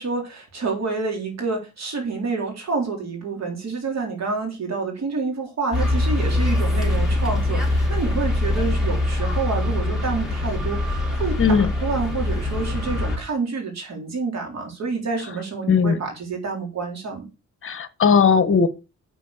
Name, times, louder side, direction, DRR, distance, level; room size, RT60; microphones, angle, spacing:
voice 1, 0.0-17.3, right 4 dB, 60° right, 3.5 m, -28 dB
sound 1, 5.7-13.2, left 2 dB, ahead, 3.9 m, -23 dB
voice 2, 11.4-11.7 15.7-16.0 17.6-18.7, left 6 dB, 45° left, 1.2 m, -17 dB
6.3 x 5.6 x 6.5 m
cardioid pair, 90°, 30 cm